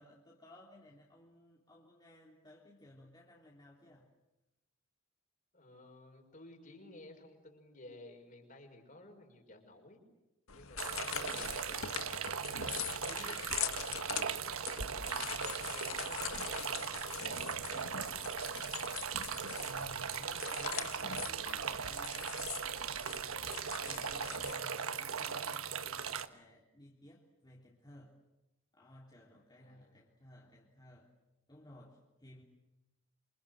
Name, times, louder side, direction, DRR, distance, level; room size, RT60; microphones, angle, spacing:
voice 1, 0.0-4.1 11.1-11.5 14.6-15.3 19.6-28.2 28.7-31.1 31.5-32.4, left 1 dB, 20° left, -4 dB, 3.5 m, -58 dB
voice 2, 5.5-10.0 10.5-18.3 29.6-30.0, left 2 dB, 40° left, 4 dB, 5.7 m, -55 dB
sound 1, 10.5-24.5, left 8 dB, 85° left, 1.7 m, -43 dB
sound 2, 10.8-26.3, right 7 dB, 90° right, 1.4 m, -39 dB
28.5 x 26.5 x 7.9 m, 0.96 s
head